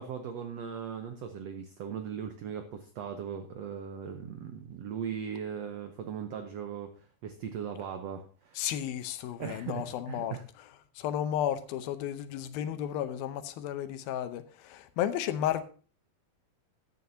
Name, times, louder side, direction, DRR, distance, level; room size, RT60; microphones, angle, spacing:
voice 1, 0.0-8.6 9.4-10.4, right 7 dB, 85° right, 1.4 m, -39 dB
voice 2, 8.6-15.6, left 11 dB, 85° left, 2.7 m, -33 dB
14.0 x 10.0 x 2.7 m
omnidirectional pair, 4.2 m